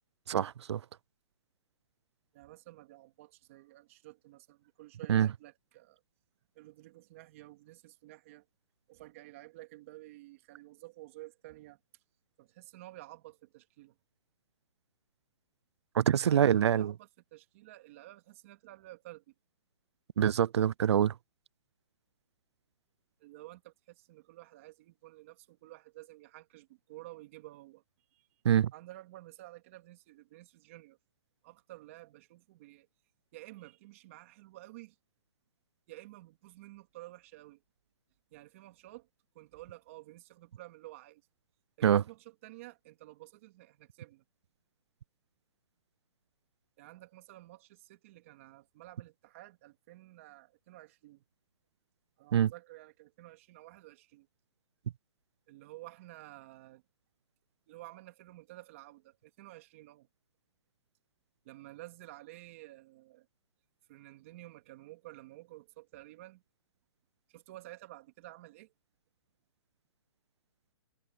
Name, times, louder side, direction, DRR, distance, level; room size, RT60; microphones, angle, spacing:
voice 1, 0.3-0.8 5.1-5.3 15.9-16.9 20.2-21.1 28.4-28.7 41.8-42.0 52.3-52.5, right 9 dB, 80° right, 0.4 m, -25 dB
voice 2, 2.3-6.0 6.5-8.5 8.9-11.8 12.4-14.0 16.2-19.3 23.2-27.8 28.1-28.3 28.7-31.0 31.4-32.9 33.3-35.0 35.9-37.6 38.3-39.1 39.3-41.2 41.8-44.2 46.8-51.3 52.2-54.3 55.5-56.8 57.7-60.1 61.4-63.3 63.9-66.4 67.3-68.7, right 18 dB, 30° right, 2.5 m, -52 dB
hypercardioid pair, 170°, 14 cm